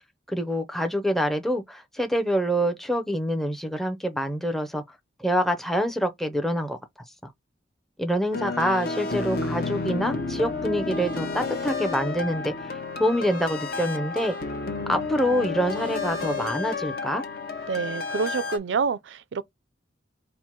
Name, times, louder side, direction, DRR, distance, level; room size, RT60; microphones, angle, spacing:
voice 1, 0.3-4.8 5.2-6.8 7.2-7.3 8.0-14.4 14.9-17.2, equal, ahead, 0.5 m, -26 dB
sound 1, 8.3-18.6, left 3 dB, 50° left, 0.8 m, -31 dB
voice 2, 17.7-19.4, right 5 dB, 80° right, 0.4 m, -27 dB
4.4 x 2.1 x 4.4 m
head